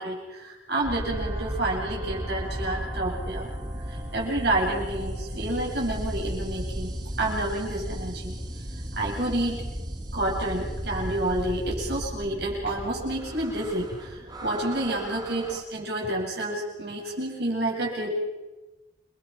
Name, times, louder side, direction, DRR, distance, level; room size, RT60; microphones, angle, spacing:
voice 1, 0.0-3.5 3.9-8.4 9.0-9.7 10.1-18.1, right 1 dB, 60° right, -2 dB, 7.9 m, -29 dB
sound 1, 0.8-15.6, equal, 20° right, 2.3 m, -35 dB
30.0 x 21.0 x 5.9 m, 1.1 s
head